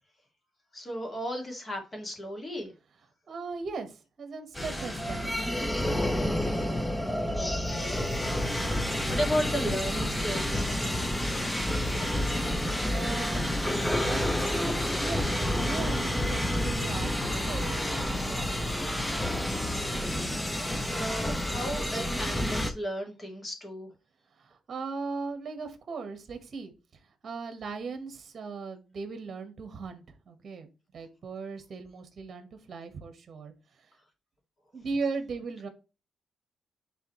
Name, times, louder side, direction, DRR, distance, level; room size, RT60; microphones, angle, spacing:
voice 1, 0.7-2.7 7.3-8.8 9.1-10.6 20.7-23.9, equal, 30° left, 2 dB, 2.3 m, -35 dB
voice 2, 3.3-5.9 12.9-13.5 14.0-19.7 24.3-33.9 34.7-35.7, right 4 dB, 45° right, 7 dB, 1.5 m, -39 dB
sound 1, 4.5-22.7, left 1 dB, 10° left, 0.7 m, -29 dB
sound 2, 7.9-22.3, right 4 dB, 30° right, 2.3 m, -49 dB
sound 3, 9.7-15.0, left 5 dB, 55° left, 0.6 m, -44 dB
10.0 x 3.9 x 3.2 m, 0.32 s
cardioid pair, 130°, 0 cm